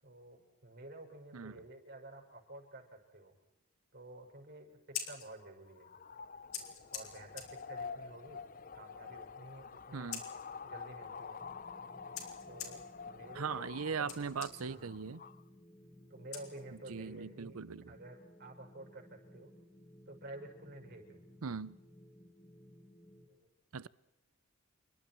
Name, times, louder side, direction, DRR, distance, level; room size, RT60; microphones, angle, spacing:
voice 1, 0.0-3.3 3.9-5.9 6.9-8.4 8.7-10.1 10.6-11.4 12.5-12.8 13.1-14.3 14.7-14.9 16.1-17.6 17.9-19.5 20.1-21.2 23.3-23.5, right 2 dB, 50° right, 6.1 m, -51 dB
Scissors, 4.7-17.1, left 8 dB, 80° left, 4.9 m, -50 dB
sound 1, 5.7-15.4, left 5 dB, 40° left, 0.7 m, -48 dB
voice 2, 9.9-10.2 13.3-15.2 16.9-17.8 21.4-21.8 23.7-23.9, right 5 dB, 90° right, 0.7 m, -39 dB
sound 2, 11.4-23.3, equal, 10° left, 2.1 m, -59 dB
28.5 x 24.0 x 4.6 m
head